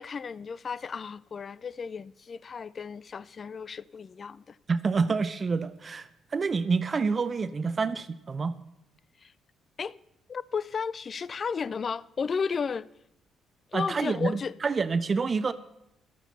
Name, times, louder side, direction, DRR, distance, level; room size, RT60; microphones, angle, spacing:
voice 1, 0.0-4.6 7.4-7.6 9.2-9.3 9.8-10.0 10.3-12.9 13.7-14.5, left 6 dB, 40° left, 0.4 m, -33 dB
voice 2, 4.7-8.6 13.7-15.5, right 4 dB, 40° right, 0.6 m, -28 dB
14.5 x 11.5 x 4.2 m
figure-of-eight pair, 45°, 0 cm